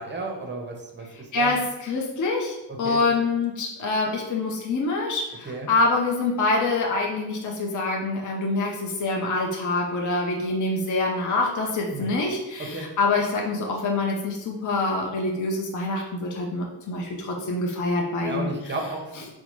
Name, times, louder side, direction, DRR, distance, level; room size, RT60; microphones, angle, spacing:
voice 1, 0.0-1.5 2.7-3.0 5.4-5.7 11.9-12.1 12.7-12.9 18.2-19.1, right 2 dB, 25° right, 1 dB, 0.7 m, -33 dB
voice 2, 1.3-18.5, left 3 dB, 45° left, -1 dB, 0.6 m, -25 dB
3.8 x 2.2 x 3.0 m, 1.0 s
cardioid pair, 85°, 42 cm